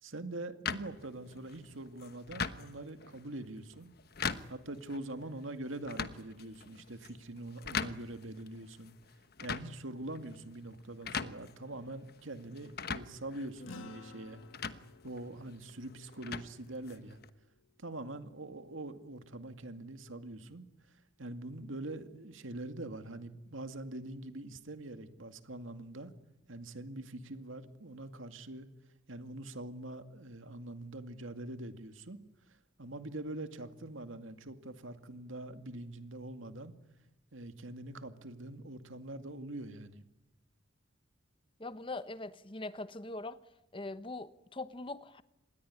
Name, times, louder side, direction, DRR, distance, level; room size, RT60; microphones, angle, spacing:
voice 1, 0.0-3.9 4.5-9.0 9.4-14.4 15.0-17.2 17.8-20.7 21.2-26.1 26.5-28.7 29.1-32.2 32.8-36.7 37.3-40.0, right 2 dB, 85° right, 2.2 m, -44 dB
sound 1, 0.7-17.3, left 5 dB, 50° left, 1.2 m, -43 dB
sound 2, 13.7-18.3, left 4 dB, 90° left, 1.8 m, -55 dB
voice 2, 41.6-43.4 43.7-45.2, left 2 dB, 25° left, 0.9 m, -42 dB
26.5 x 20.5 x 9.9 m
head